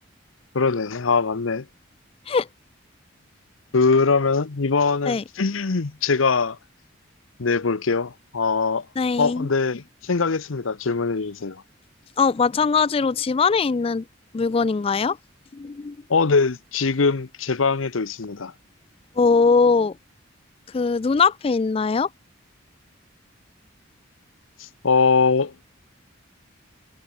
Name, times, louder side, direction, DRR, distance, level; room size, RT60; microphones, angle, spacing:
voice 1, 0.5-1.6 3.7-6.6 7.4-8.9 9.2-11.6 16.1-18.5 24.6-25.5, left 4 dB, 90° left, 0.8 m, -22 dB
voice 2, 9.0-9.5 12.2-14.0 14.3-15.2 15.5-16.0 19.2-20.0 20.7-22.1, left 5 dB, 30° left, 0.3 m, -21 dB
head